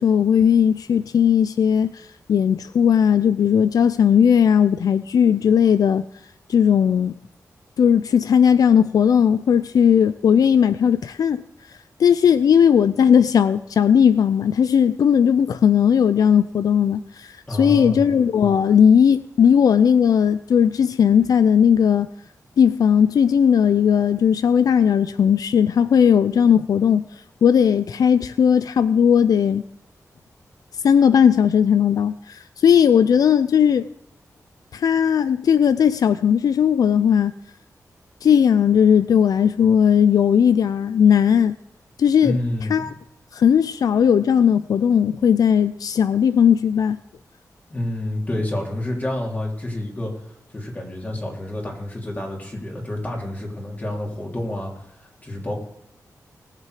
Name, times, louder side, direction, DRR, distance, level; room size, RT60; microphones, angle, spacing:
voice 1, 0.0-6.0 6.5-7.2 7.8-11.4 12.0-17.3 17.6-22.1 22.6-27.0 27.4-29.6 30.8-33.8 34.7-37.3 38.2-41.5 42.0-42.4 42.7-42.9 43.3-47.0, left 8 dB, 90° left, 0.4 m, -17 dB
voice 2, 17.5-18.1 42.2-42.9 47.7-55.5, left 1 dB, 25° left, 3.3 m, -29 dB
19.5 x 7.6 x 4.9 m
wide cardioid pair, 120°, 6 cm